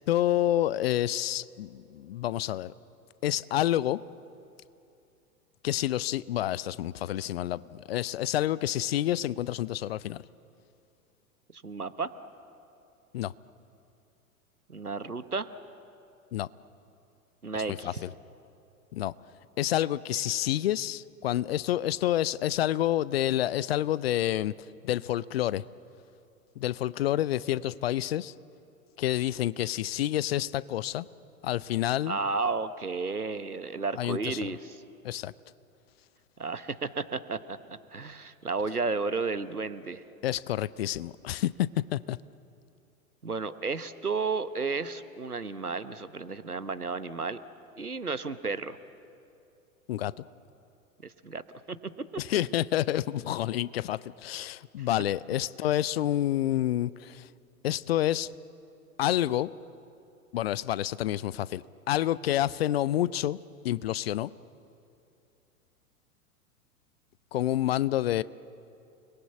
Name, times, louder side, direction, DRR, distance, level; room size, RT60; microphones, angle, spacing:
voice 1, 0.1-2.7 3.2-4.0 5.6-10.2 13.1-13.3 16.3-16.5 17.7-18.1 18.9-19.1 19.6-24.5 24.8-25.6 26.6-28.3 29.0-31.1 31.4-32.2 34.0-34.5 35.0-35.3 40.2-42.2 49.9-50.1 52.2-57.3 57.6-58.3 59.0-59.5 60.3-63.4 63.6-64.3 67.3-68.2, left 13 dB, 45° left, 20 dB, 0.6 m, -28 dB
voice 2, 11.5-12.1 14.7-15.5 17.4-18.0 32.1-34.8 36.4-40.0 43.2-47.4 47.8-48.8 51.0-51.4 51.7-51.8 52.1-52.2, right 4 dB, 90° right, 13 dB, 1.1 m, -33 dB
29.5 x 20.5 x 8.3 m, 2.6 s
figure-of-eight pair, 100°, 44 cm